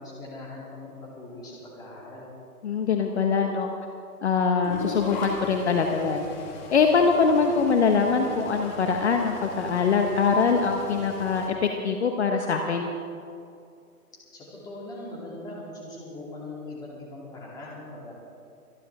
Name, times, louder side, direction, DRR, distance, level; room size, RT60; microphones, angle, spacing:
voice 1, 0.0-2.3 14.3-18.1, left 2 dB, 10° left, -6 dB, 2.8 m, -40 dB
voice 2, 2.6-3.7 4.2-6.2 6.7-12.9, left 5 dB, 45° left, 4 dB, 1.1 m, -23 dB
sound 1, 4.6-11.5, left 3 dB, 30° left, 1.9 m, -39 dB
25.0 x 11.5 x 3.6 m, 2.5 s
hypercardioid pair, 155°, 46 cm